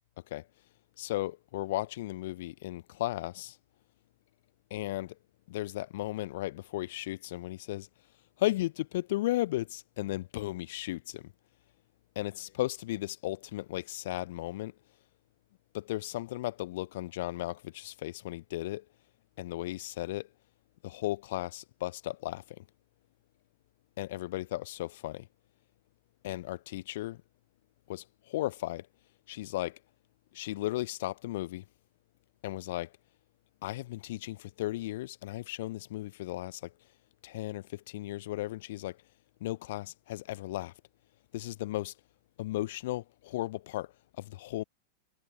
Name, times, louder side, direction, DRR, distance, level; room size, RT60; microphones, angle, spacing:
voice 1, 1.0-3.6 4.7-5.2 5.5-7.9 8.4-11.3 12.1-14.7 15.7-18.8 19.4-20.3 20.8-22.6 24.0-25.3 26.2-27.2 27.9-28.9 29.3-29.8 30.3-31.6 32.4-32.9 33.6-36.7 37.2-39.0 39.4-40.7 41.3-41.9 42.4-44.6, left 16 dB, 55° left, 3.3 m, -35 dB
figure-of-eight pair, 90°, 0 cm